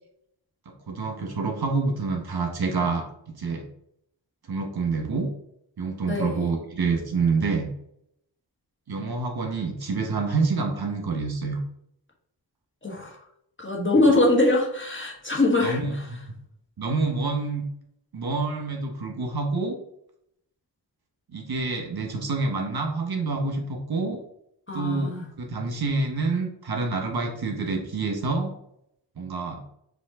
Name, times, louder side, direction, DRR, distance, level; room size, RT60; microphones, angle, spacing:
voice 1, 0.9-3.7 4.5-5.3 5.8-7.7 8.9-11.6 15.6-16.2 16.8-17.6 18.1-19.8 21.3-24.2 24.7-28.5 29.2-29.6, right 4 dB, 55° right, 1 dB, 1.2 m, -27 dB
voice 2, 6.1-6.5 12.8-13.2 13.6-15.8 24.7-25.3, left 2 dB, 25° left, -1 dB, 1.4 m, -23 dB
5.3 x 2.6 x 3.7 m, 0.72 s
cardioid pair, 65°, 45 cm